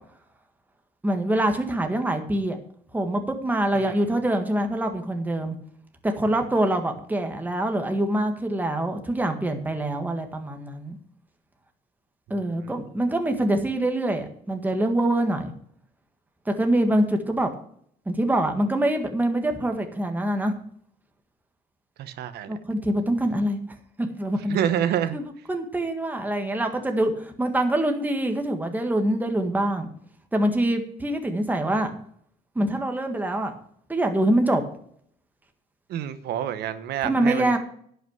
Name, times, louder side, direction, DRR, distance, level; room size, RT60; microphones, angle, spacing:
voice 1, 1.0-2.6 2.9-5.5 6.0-11.0 12.3-15.5 16.4-17.5 18.0-20.6 22.5-23.6 24.0-24.6 25.1-25.2 25.5-29.9 30.3-31.9 32.5-33.5 33.9-34.6 37.0-37.6, right 1 dB, 10° right, 1.7 m, -24 dB
voice 2, 22.0-22.5 24.5-25.2 35.9-37.6, right 10 dB, 75° right, 1.2 m, -28 dB
11.0 x 5.9 x 7.9 m
cardioid pair, 110°, 17 cm